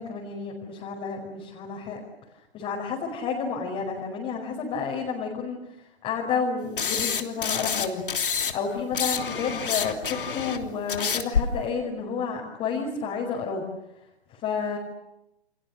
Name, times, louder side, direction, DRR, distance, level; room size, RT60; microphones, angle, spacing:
voice 1, 0.0-2.0 2.5-8.0 8.5-13.7 14.3-14.8, left 5 dB, 20° left, -1 dB, 5.3 m, -30 dB
sound 1, 6.8-8.5 8.8-11.4, left 6 dB, 55° left, 3.2 m, -27 dB
30.0 x 28.5 x 6.6 m, 0.87 s
figure-of-eight pair, 130°, 32 cm